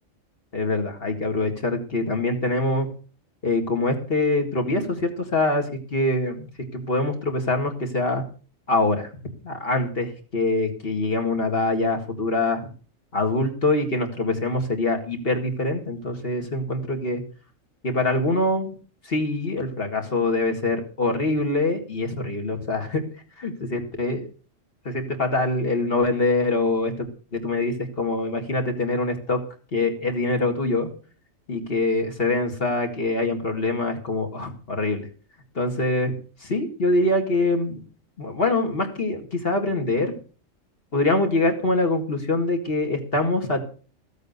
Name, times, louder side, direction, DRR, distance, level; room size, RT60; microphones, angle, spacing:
voice 1, 0.5-2.9 3.4-6.5 6.7-8.2 8.7-9.1 9.4-12.6 13.1-17.2 17.8-18.7 19.1-23.0 23.4-24.3 24.9-29.4 29.7-30.9 31.5-35.1 35.6-36.1 36.4-37.8 38.2-40.1 40.9-43.6, left 2 dB, 45° left, 4 dB, 2.2 m, -24 dB
14.0 x 8.1 x 6.6 m, 0.39 s
omnidirectional pair, 1.4 m